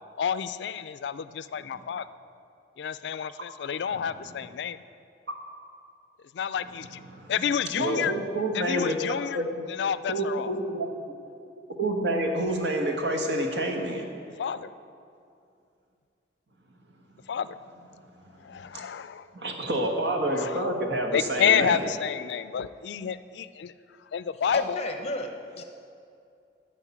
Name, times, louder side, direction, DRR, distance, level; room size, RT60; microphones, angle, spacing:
voice 1, 0.2-2.1 2.8-4.8 6.3-7.0 7.3-8.1 8.5-9.4 9.7-10.5 14.4-14.7 17.3-17.6 18.4-19.3 20.4-20.7 21.1-23.7 24.1-24.8, left 8 dB, 75° left, 14 dB, 0.3 m, -29 dB
voice 2, 3.9-4.4 7.1-7.3 7.8-8.9 9.3-9.4 10.1-10.9 11.8-14.1 17.2-17.3 18.4-18.8 19.3-21.8, right 1 dB, 85° right, 3 dB, 1.4 m, -28 dB
voice 3, 24.5-25.6, left 2 dB, 35° left, 5 dB, 0.9 m, -32 dB
11.0 x 5.1 x 8.4 m, 2.5 s
head